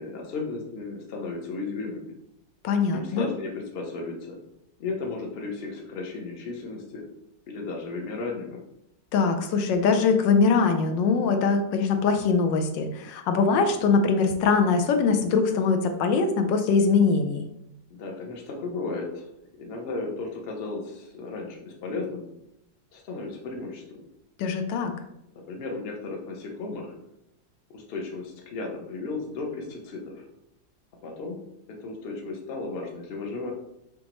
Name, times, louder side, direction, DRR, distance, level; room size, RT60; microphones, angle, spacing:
voice 1, 0.0-2.1 2.9-4.4 4.8-7.0 7.5-8.6 17.9-19.2 19.6-22.3 22.9-24.0 25.3-26.9 27.7-30.2 31.0-31.4 31.8-33.5, left 3 dB, 45° left, 1 dB, 0.9 m, -34 dB
voice 2, 2.6-3.3 9.1-17.4 24.4-24.9, left 5 dB, 85° left, 6 dB, 1.3 m, -22 dB
5.1 x 3.5 x 3.0 m, 0.82 s
omnidirectional pair, 1.9 m